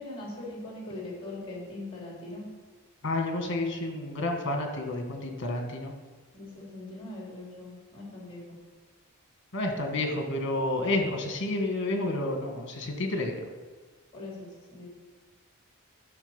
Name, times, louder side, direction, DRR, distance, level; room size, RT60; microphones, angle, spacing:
voice 1, 0.0-2.4 6.3-8.5 14.1-14.9, left 2 dB, 25° left, -3 dB, 3.3 m, -41 dB
voice 2, 3.0-5.9 9.5-13.4, left 2 dB, 55° left, 3 dB, 1.6 m, -30 dB
11.5 x 6.3 x 5.4 m, 1.4 s
head